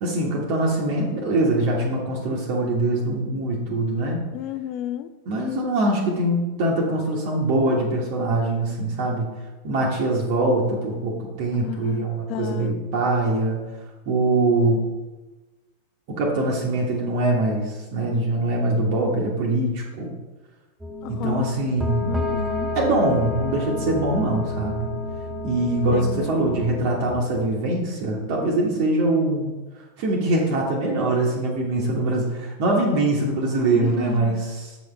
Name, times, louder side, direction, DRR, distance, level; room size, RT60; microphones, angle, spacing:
voice 1, 0.0-4.3 5.3-9.3 9.6-13.6 14.1-14.8 16.1-20.1 21.1-22.1 22.7-24.9 25.4-29.5 30.0-34.8, right 2 dB, 45° right, -2 dB, 1.2 m, -23 dB
voice 2, 4.3-5.1 11.6-12.7 21.0-21.5 22.0-22.7 25.9-26.7 33.7-34.4, left 13 dB, 40° left, 13 dB, 0.4 m, -32 dB
sound 1, 20.8-27.1, left 2 dB, 10° right, 0.7 m, -30 dB
7.5 x 5.2 x 3.3 m, 1.2 s
figure-of-eight pair, 90°, 0 cm